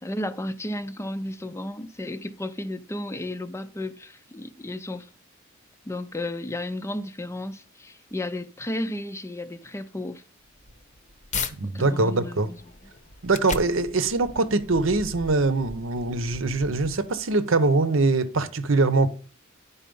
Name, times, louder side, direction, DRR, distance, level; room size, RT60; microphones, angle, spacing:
voice 1, 0.0-5.1 5.9-10.2 11.6-12.7, left 1 dB, 15° left, 0.5 m, -33 dB
sound 1, 10.4-11.5 12.1-17.3, left 4 dB, 35° left, 0.8 m, -38 dB
voice 2, 11.6-12.5 13.2-19.1, right 3 dB, 70° right, 0.8 m, -23 dB
10.0 x 4.2 x 5.4 m
head